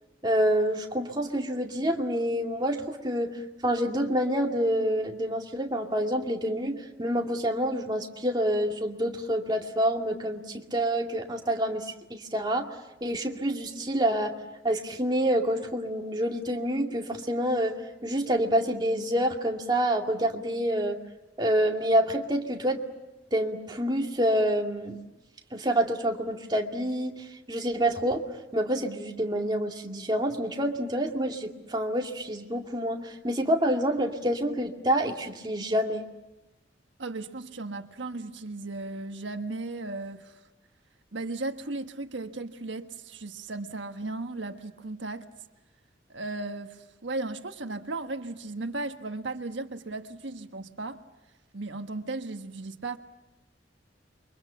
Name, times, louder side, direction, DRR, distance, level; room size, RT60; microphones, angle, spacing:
voice 1, 0.2-12.8 13.0-14.3 14.6-17.8 18.0-21.0 21.4-22.8 23.3-25.0 25.5-28.2 28.5-36.0, equal, 25° right, 2.3 m, -27 dB
voice 2, 37.0-40.4 41.1-45.3 46.1-51.0 51.5-53.0, right 2 dB, 80° right, 1.4 m, -36 dB
29.0 x 24.0 x 7.1 m
head